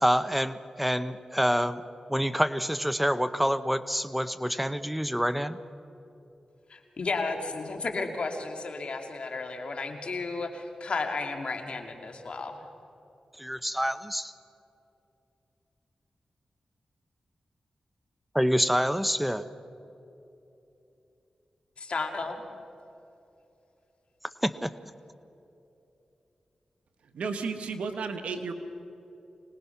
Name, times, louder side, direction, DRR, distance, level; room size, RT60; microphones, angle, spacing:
voice 1, 0.0-1.8 2.1-5.6 13.4-14.3 18.3-19.5 24.4-24.7, equal, 5° right, 13 dB, 0.8 m, -27 dB
voice 2, 6.7-12.6 21.8-22.5, left 3 dB, 60° left, 4 dB, 2.3 m, -33 dB
voice 3, 27.1-28.5, right 4 dB, 85° right, 7 dB, 1.4 m, -33 dB
25.0 x 19.0 x 5.8 m, 2.9 s
cardioid pair, 50°, 2 cm